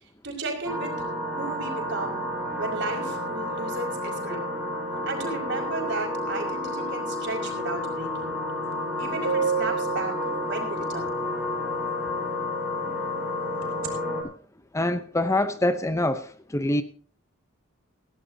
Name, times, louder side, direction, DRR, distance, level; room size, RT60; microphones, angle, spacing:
voice 1, 0.2-2.2 2.6-4.4 5.1-8.4 9.0-11.2, right 3 dB, 60° right, 5.4 m, -34 dB
sound 1, 0.6-14.2, left 1 dB, 5° right, 6.4 m, -30 dB
sound 2, 8.7-8.8 9.2-11.0 13.6-13.9, right 6 dB, 85° right, 4.9 m, -29 dB
voice 2, 14.7-16.8, left 1 dB, 15° left, 0.7 m, -25 dB
19.0 x 16.5 x 2.7 m
head